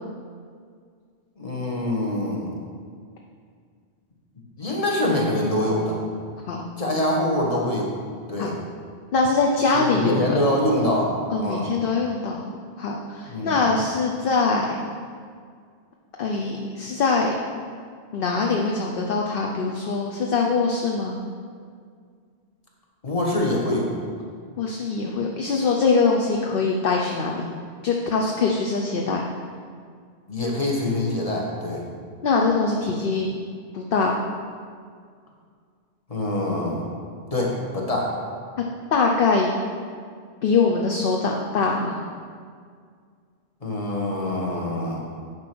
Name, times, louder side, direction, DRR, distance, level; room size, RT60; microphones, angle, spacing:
voice 1, 1.4-2.5 4.6-6.0 6.8-7.9 8.3-8.6 9.7-11.1 11.4-11.7 13.3-13.6 23.0-23.9 30.3-31.9 36.1-36.8 37.3-38.1 43.6-45.0, left 1 dB, 30° left, -2 dB, 1.5 m, -24 dB
voice 2, 9.1-10.4 11.3-12.4 12.8-14.8 16.2-17.3 18.1-21.2 24.6-27.4 27.8-29.2 32.2-33.3 33.7-34.1 38.9-39.5 40.4-42.0, left 4 dB, 60° left, 0 dB, 0.9 m, -23 dB
9.8 x 4.6 x 6.0 m, 2.1 s
omnidirectional pair, 1.1 m